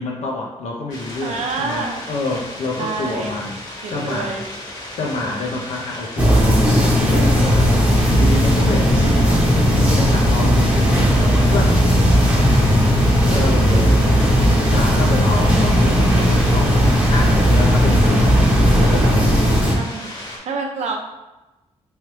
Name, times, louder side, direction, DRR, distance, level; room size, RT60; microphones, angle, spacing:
voice 1, 0.0-3.6 3.9-4.4 5.0-11.8 12.5-14.3 14.7-19.2, left 2 dB, 65° left, -1 dB, 0.6 m, -27 dB
sound 1, 0.9-20.4, left 1 dB, 35° left, 1.1 m, -35 dB
voice 2, 1.2-2.0 2.8-3.4 3.8-4.5 13.3-14.4 19.7-20.1 20.5-21.0, right 4 dB, 70° right, 2 dB, 0.6 m, -29 dB
sound 2, 6.2-19.7, equal, 10° right, 0.9 m, -16 dB
sound 3, 10.7-14.8, right 2 dB, 15° left, 0.6 m, -33 dB
3.1 x 2.8 x 3.1 m, 1.0 s
cardioid pair, 90°, 12 cm